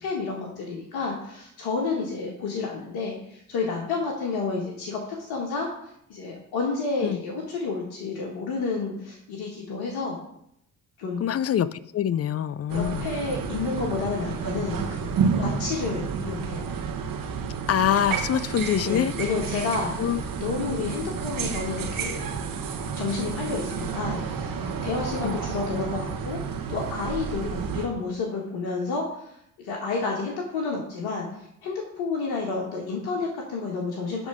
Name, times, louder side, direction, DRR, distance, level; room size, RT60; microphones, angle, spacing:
voice 1, 0.0-5.7 6.1-10.2 11.0-11.2 12.7-16.7 18.8-20.0 20.4-22.3 23.0-31.3 31.6-34.3, left 4 dB, 65° left, -2 dB, 1.7 m, -30 dB
voice 2, 11.2-13.1 17.7-19.1 20.0-20.2 25.2-25.4, left 10 dB, 35° left, 17 dB, 0.5 m, -25 dB
sound 1, 12.7-27.9, right 6 dB, 55° right, 1.3 m, -30 dB
11.0 x 3.7 x 5.0 m, 0.75 s
hypercardioid pair, 45°, 41 cm